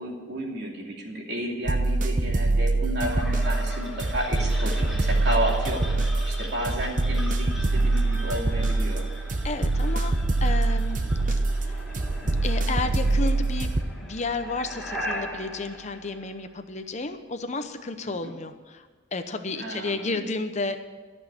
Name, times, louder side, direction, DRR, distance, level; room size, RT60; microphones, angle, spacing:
voice 1, 0.0-5.8 6.2-9.0 18.1-18.3 19.6-20.2, equal, 60° right, -1 dB, 2.9 m, -32 dB
sound 1, 1.7-13.8, right 2 dB, 40° right, 0.8 m, -24 dB
sound 2, 3.0-16.9, left 1 dB, ahead, 2.8 m, -39 dB
voice 2, 9.4-10.1 10.4-11.0 11.5-11.8 12.4-13.7 14.0-20.8, left 3 dB, 35° left, 7 dB, 0.8 m, -32 dB
13.5 x 6.3 x 9.8 m, 1.4 s
head